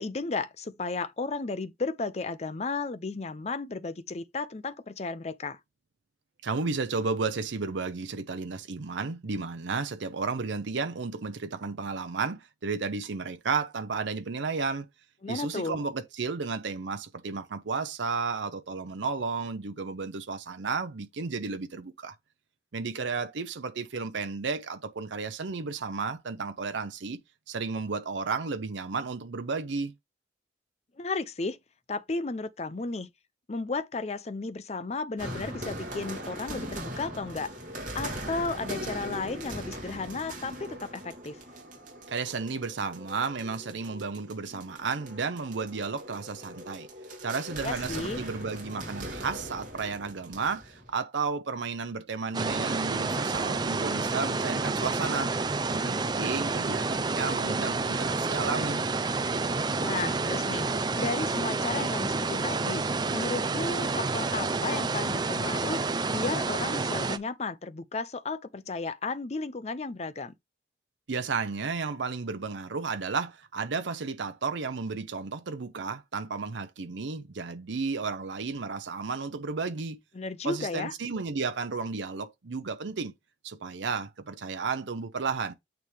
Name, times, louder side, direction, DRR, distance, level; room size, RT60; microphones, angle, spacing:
voice 1, 0.0-5.6 15.2-15.8 31.0-31.6 31.9-33.1 33.5-37.6 37.9-41.4 47.6-48.2 59.8-60.7 61.0-62.8 63.1-65.8 66.1-70.3 80.1-80.9, left 3 dB, 35° left, 0.5 m, -34 dB
voice 2, 6.4-14.9 15.3-22.1 22.7-27.2 27.5-29.9 42.1-46.9 47.2-55.3 55.7-58.8 71.1-80.0 80.4-83.1 83.4-85.5, right 4 dB, 85° right, 0.7 m, -33 dB
sound 1, 35.2-50.9, right 1 dB, 45° right, 2.7 m, -40 dB
sound 2, 52.3-67.2, right 3 dB, 25° right, 0.5 m, -29 dB
9.0 x 3.6 x 3.3 m
head